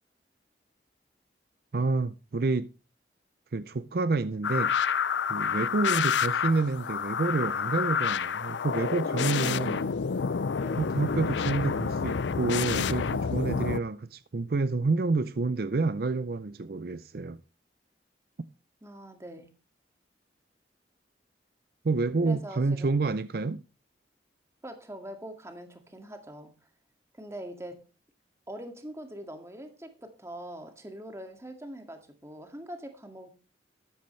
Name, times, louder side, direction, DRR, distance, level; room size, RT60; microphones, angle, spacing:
voice 1, 1.7-2.7 3.5-4.7 5.3-9.9 10.8-17.4 21.8-23.6, right 3 dB, 55° right, 0.5 m, -28 dB
sound 1, 4.4-13.8, left 6 dB, 85° left, 0.5 m, -29 dB
voice 2, 9.3-10.0 10.6-10.9 18.8-19.5 22.2-23.0 24.6-26.5 27.1-27.8 28.5-33.3, right 1 dB, 15° right, 2.0 m, -43 dB
13.0 x 11.5 x 3.2 m
head